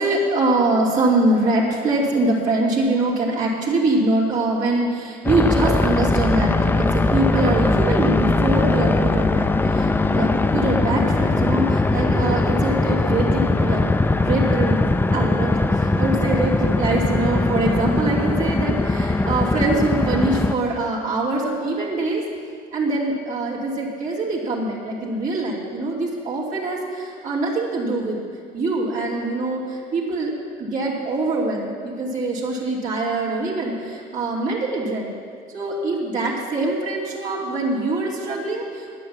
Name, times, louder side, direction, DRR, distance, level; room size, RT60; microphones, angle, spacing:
voice 1, 0.0-13.9 14.2-22.2 22.7-28.2 28.5-30.3 30.6-35.1 35.5-39.0, right 2 dB, 50° right, -5 dB, 2.5 m, -23 dB
sound 1, 5.2-20.5, left 2 dB, 10° left, 0.4 m, -20 dB
10.5 x 8.8 x 7.3 m, 2.2 s
cardioid pair, 110°, 17 cm